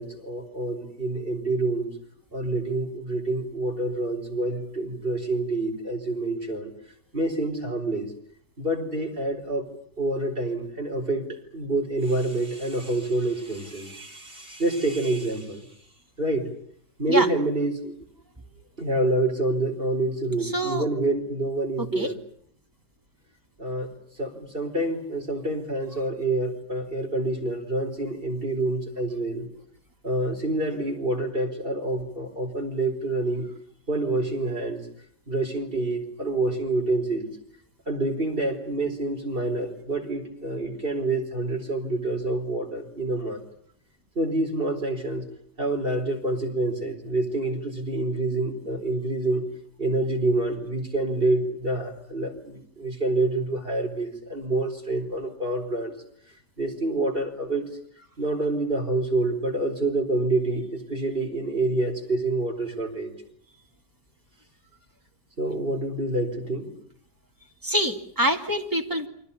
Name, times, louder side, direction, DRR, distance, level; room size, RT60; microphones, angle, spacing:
voice 1, 0.0-1.9 2.3-6.7 7.1-8.1 8.6-9.7 10.0-11.2 11.5-15.7 16.2-16.5 17.0-17.9 18.8-22.2 23.6-23.9 24.2-29.5 30.0-33.5 33.9-34.8 35.3-37.3 37.9-43.4 44.2-45.2 45.6-49.4 49.8-55.9 56.6-57.7 58.2-63.1 65.4-66.7, right 2 dB, 30° right, 2 dB, 4.6 m, -27 dB
voice 2, 20.4-20.8 22.0-22.1 67.6-69.1, equal, 10° right, 3 dB, 2.2 m, -25 dB
29.0 x 24.5 x 7.1 m, 0.66 s
omnidirectional pair, 1.8 m